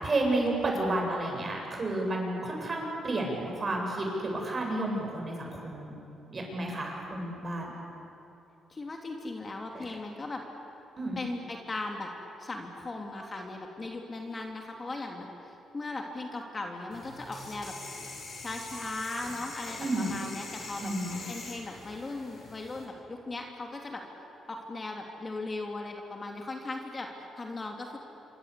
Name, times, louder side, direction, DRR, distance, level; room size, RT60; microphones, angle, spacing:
voice 1, 0.0-5.9 6.3-7.7 9.7-9.8 11.0-11.2 19.8-20.2 20.8-21.2, right 2 dB, 35° right, 0 dB, 7.9 m, -31 dB
voice 2, 8.7-10.4 11.2-12.1 12.4-17.7 18.4-20.9 21.3-24.0 24.5-28.0, left 2 dB, 30° left, 2 dB, 3.1 m, -38 dB
sound 1, 16.9-22.8, left 3 dB, 45° left, 7.2 m, -43 dB
27.0 x 25.0 x 8.6 m, 2.9 s
cardioid pair, 90°, 0 cm